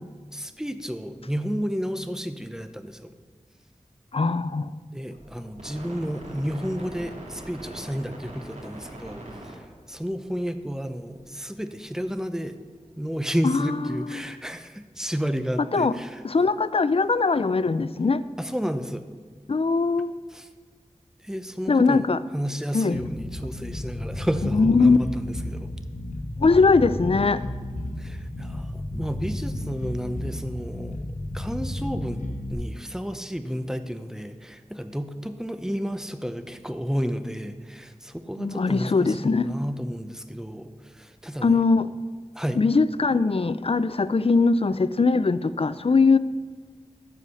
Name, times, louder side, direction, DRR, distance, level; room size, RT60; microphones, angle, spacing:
voice 1, 0.3-3.1 4.9-12.6 13.0-16.2 18.4-19.1 20.3-20.5 21.2-22.0 22.3-25.7 28.0-31.0 31.3-32.2 32.5-41.6 42.3-42.6, equal, 5° right, 9 dB, 0.8 m, -31 dB
voice 2, 4.1-4.7 13.4-14.2 15.7-15.9 16.2-18.2 19.5-20.2 21.7-22.2 22.7-23.0 24.5-25.0 26.4-27.4 38.4-39.5 41.4-41.9 42.6-46.2, left 4 dB, 50° left, 15 dB, 0.5 m, -21 dB
sound 1, 5.1-11.7 12.0-12.1, right 1 dB, 75° right, 2.5 m, -42 dB
Bass guitar, 22.9-32.5, left 1 dB, 85° left, 1.2 m, -33 dB
13.5 x 4.9 x 7.0 m, 1.5 s
wide cardioid pair, 45°, 12 cm